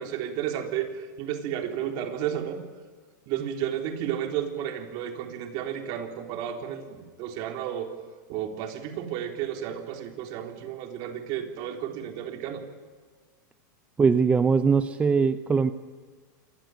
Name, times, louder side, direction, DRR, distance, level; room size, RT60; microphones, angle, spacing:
voice 1, 0.0-2.6 3.3-7.9 8.3-12.6, right 10 dB, 45° right, 4 dB, 3.8 m, -32 dB
voice 2, 14.0-15.7, right 5 dB, 10° right, 11 dB, 0.7 m, -21 dB
27.0 x 21.0 x 9.3 m, 1.5 s
supercardioid pair, 150°, 10 cm